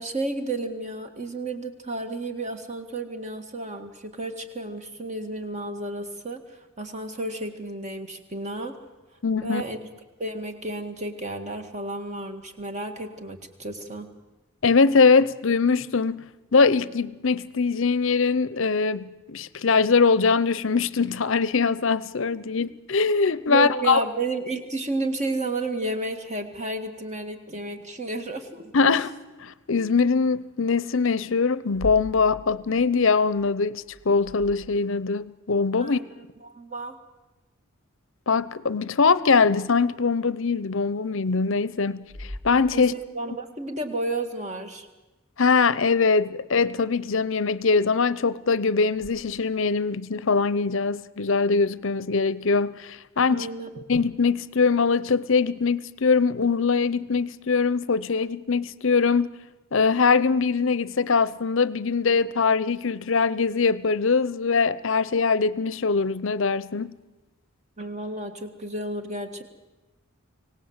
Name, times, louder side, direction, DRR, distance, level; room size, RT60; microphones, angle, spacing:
voice 1, 0.0-8.7 9.4-9.9 10.2-14.1 23.5-28.7 35.8-37.0 42.7-44.9 53.3-53.9 67.8-69.4, right 2 dB, 30° right, 1.9 m, -32 dB
voice 2, 9.2-9.6 14.6-24.0 28.7-29.1 29.4-36.0 38.3-42.9 45.4-53.5 53.9-59.4 59.7-67.0, left 4 dB, 60° left, 0.7 m, -22 dB
sound 1, 31.6-35.2 39.6-39.7 40.6-40.8 42.0-43.3 48.9-49.1, left 1 dB, 80° right, 4.2 m, -42 dB
24.5 x 18.0 x 8.0 m
head